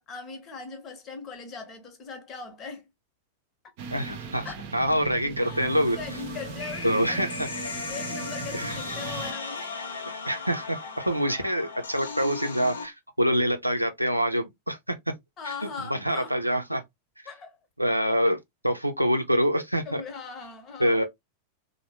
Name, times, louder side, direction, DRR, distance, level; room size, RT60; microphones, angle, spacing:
voice 1, 0.0-2.8 4.4-4.7 5.9-7.3 7.9-9.7 15.4-16.4 17.3-17.6 19.8-21.0, left 5 dB, 30° left, 1.0 m, -39 dB
sound 1, 3.8-9.3, right 5 dB, 50° right, 0.6 m, -39 dB
voice 2, 3.9-4.5 4.7-6.0 6.8-7.5 8.5-8.8 10.3-15.0 15.9-16.8 17.8-18.4 18.6-20.0 20.8-21.0, equal, 90° right, 0.5 m, -25 dB
sound 2, 5.4-12.9, left 4 dB, 70° left, 0.7 m, -37 dB
3.3 x 2.2 x 2.8 m
figure-of-eight pair, 90°, 0 cm